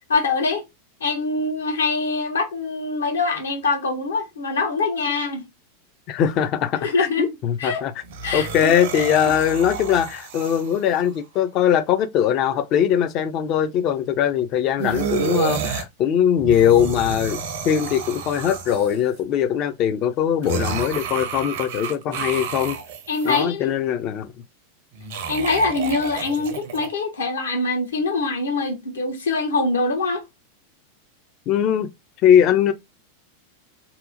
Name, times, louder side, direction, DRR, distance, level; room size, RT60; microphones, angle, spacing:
voice 1, 0.1-0.6 1.0-5.4 6.8-7.3 7.6-7.8 8.2-8.7 23.1-23.7 25.3-30.2, left 3 dB, 70° left, 0.7 m, -24 dB
voice 2, 6.1-7.9 8.3-17.4 17.6-22.8 23.2-24.3 31.5-31.9 32.2-32.7, left 9 dB, 40° left, 0.4 m, -21 dB
sound 1, 8.0-11.1 14.8-15.9 16.4-19.2 20.4-23.4 24.9-26.9, right 6 dB, 55° right, 0.5 m, -30 dB
2.7 x 2.0 x 2.4 m
figure-of-eight pair, 90°, 0 cm